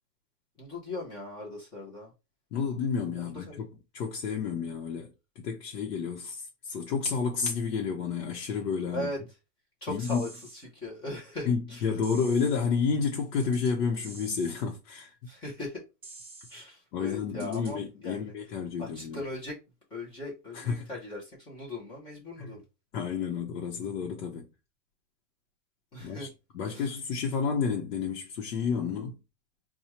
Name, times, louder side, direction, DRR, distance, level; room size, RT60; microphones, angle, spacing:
voice 1, 0.6-2.1 3.5-3.6 8.9-9.2 9.8-10.3 10.7-11.9 15.3-15.8 16.5-18.3 18.8-19.6 19.9-22.6 25.9-26.3 26.7-26.8, left 1 dB, 10° left, 0.6 m, -38 dB
voice 2, 2.5-3.7 3.9-9.1 9.9-10.2 11.5-15.1 16.9-19.2 20.5-20.9 22.4-22.5 22.9-24.5 26.0-29.2, left 5 dB, 65° left, 0.9 m, -30 dB
sound 1, 10.0-10.6 12.0-12.6 13.4-13.7 14.0-14.6 16.0-16.6 17.4-17.7, right 2 dB, 10° right, 1.0 m, -48 dB
4.3 x 2.3 x 2.8 m
supercardioid pair, 165°, 49 cm